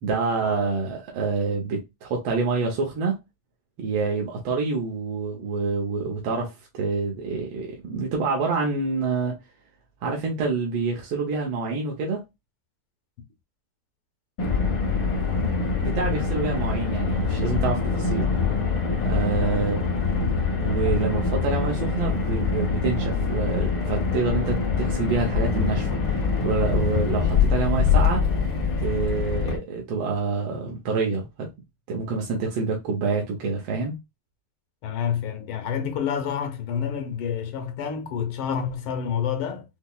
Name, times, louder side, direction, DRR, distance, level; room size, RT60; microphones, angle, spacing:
voice 1, 0.0-3.2 3.8-9.4 10.0-12.2 15.8-18.3 19.0-19.8 20.6-28.2 28.8-31.5 31.9-34.0, right 4 dB, 75° right, 1.6 m, -27 dB
Car, 14.4-29.6, left 5 dB, 60° left, 1.7 m, -24 dB
voice 2, 34.8-39.6, left 8 dB, 85° left, 1.7 m, -28 dB
5.5 x 2.0 x 2.3 m
omnidirectional pair, 2.3 m